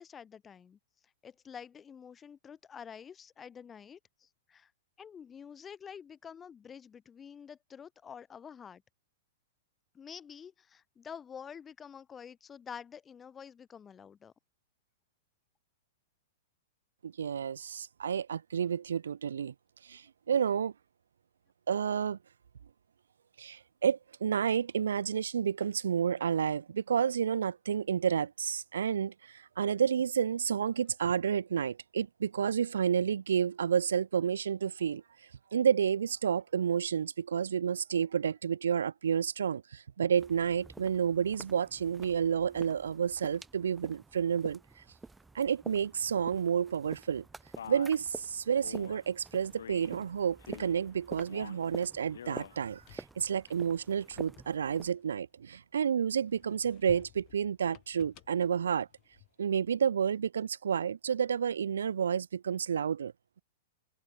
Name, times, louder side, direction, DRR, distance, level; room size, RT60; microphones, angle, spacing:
voice 1, 0.0-4.7 5.0-8.8 9.9-14.3, left 7 dB, 20° left, 0.9 m, -48 dB
voice 2, 17.0-19.5 19.9-20.7 21.7-22.2 23.4-35.0 35.5-44.6 45.3-47.2 47.7-58.9 59.4-63.1, right 7 dB, 90° right, 0.6 m, -30 dB
sound 1, 40.1-54.9, right 3 dB, 10° right, 0.4 m, -49 dB
Male speech man speaking, 47.6-48.0 48.6-49.0 49.6-50.0 50.4-50.8 51.2-51.7 52.1-52.6, left 8 dB, 80° left, 2.7 m, -46 dB
sound 2, 52.5-55.7 56.2-59.6, left 23 dB, 40° left, 1.3 m, -58 dB
hypercardioid pair, 135°, 0 cm